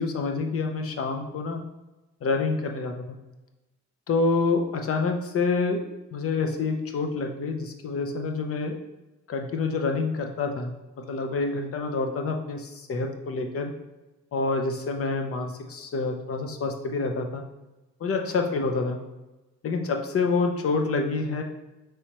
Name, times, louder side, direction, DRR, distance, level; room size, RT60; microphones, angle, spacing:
voice 1, 0.0-1.6 2.2-3.2 4.1-5.8 6.1-8.8 9.3-10.7 11.0-13.7 14.3-17.4 18.0-19.0 19.6-21.4, left 3 dB, 50° left, 4 dB, 0.6 m, -27 dB
4.7 x 3.1 x 2.9 m, 1.1 s
cardioid pair, 90°, 30 cm